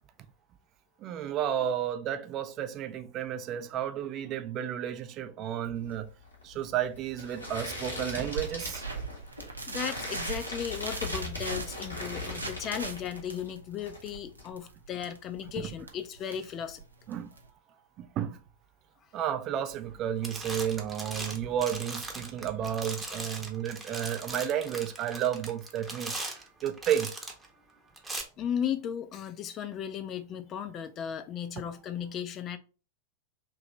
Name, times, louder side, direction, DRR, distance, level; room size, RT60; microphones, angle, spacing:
voice 1, 1.0-6.1 6.4-8.8 15.6-15.7 17.1-17.3 18.0-18.4 19.1-26.1 26.6-27.1, right 10 dB, 35° right, 0.4 m, -32 dB
sound 1, 5.8-13.5 13.8-14.4, left 2 dB, 85° left, 1.3 m, -39 dB
sound 2, 8.3-17.5, right 4 dB, 80° right, 0.6 m, -40 dB
voice 2, 9.7-16.8 28.4-32.6, left 8 dB, 30° left, 0.4 m, -36 dB
sound 3, 19.7-20.0 20.2-27.5 28.0-28.2, right 2 dB, 10° right, 0.8 m, -39 dB
3.0 x 2.9 x 3.6 m
figure-of-eight pair, 90°, 0 cm